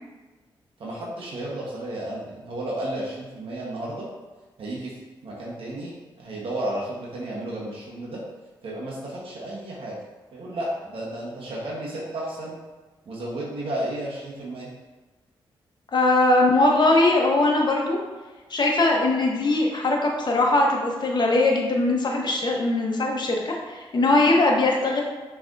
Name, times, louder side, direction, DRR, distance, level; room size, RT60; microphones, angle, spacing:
voice 1, 0.8-4.1 4.6-8.2 8.6-10.0 10.3-12.6 13.1-14.7, right 1 dB, 65° right, -5 dB, 1.2 m, -33 dB
voice 2, 15.9-18.0 18.5-25.0, left 2 dB, 50° left, 0 dB, 1.1 m, -21 dB
5.8 x 3.4 x 2.6 m, 1.3 s
cardioid pair, 60°, 10 cm